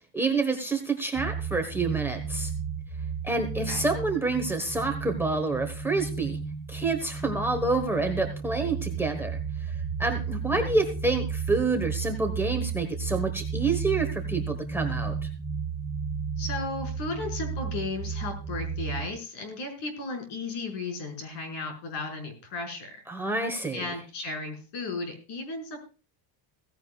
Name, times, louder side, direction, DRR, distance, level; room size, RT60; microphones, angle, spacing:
voice 1, 0.1-2.5 3.2-6.4 6.7-15.3 23.1-23.9, right 3 dB, 5° right, 3 dB, 1.3 m, -28 dB
sound 1, 1.1-19.1, right 5 dB, 15° left, 2.8 m, -33 dB
voice 2, 16.4-22.9 23.7-25.8, left 3 dB, 60° left, 4 dB, 5.5 m, -35 dB
16.0 x 15.5 x 2.4 m, 0.33 s
cardioid pair, 165°, 45 cm